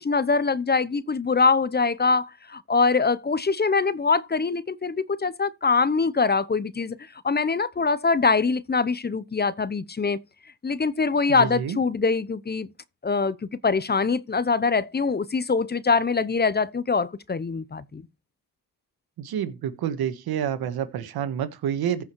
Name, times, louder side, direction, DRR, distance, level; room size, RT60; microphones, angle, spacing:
voice 1, 0.0-7.0 7.2-10.2 10.6-12.7 13.0-18.0, left 4 dB, 25° left, 0.8 m, -23 dB
voice 2, 11.3-11.8 19.2-22.0, right 9 dB, 90° right, 1.6 m, -28 dB
15.0 x 5.3 x 4.6 m
cardioid pair, 80°, 36 cm